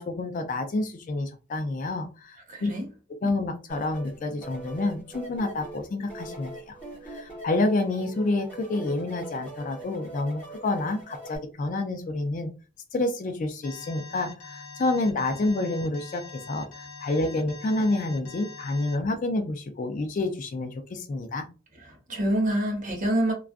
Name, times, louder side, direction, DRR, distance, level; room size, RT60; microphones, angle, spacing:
voice 1, 0.0-2.7 3.2-6.5 7.0-12.5 12.9-21.4, left 2 dB, 40° left, 0.3 m, -28 dB
voice 2, 2.4-2.9 21.7-23.3, right 1 dB, 40° right, 0.7 m, -27 dB
sound 1, 3.7-11.4, right 2 dB, 10° left, 1.1 m, -43 dB
Alarm, 13.6-19.0, left 4 dB, 75° left, 0.9 m, -44 dB
2.3 x 2.3 x 2.4 m
head